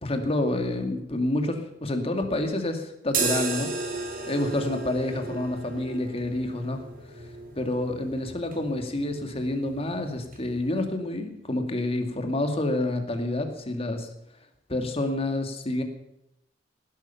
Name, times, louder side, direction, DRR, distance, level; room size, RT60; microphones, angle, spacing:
voice 1, 0.0-4.0 4.3-6.8 7.6-14.1 14.7-15.8, left 1 dB, 30° left, 5 dB, 2.2 m, -28 dB
sound 1, 3.1-10.9, right 4 dB, 50° right, 2.7 m, -35 dB
18.5 x 11.5 x 5.8 m, 0.85 s
head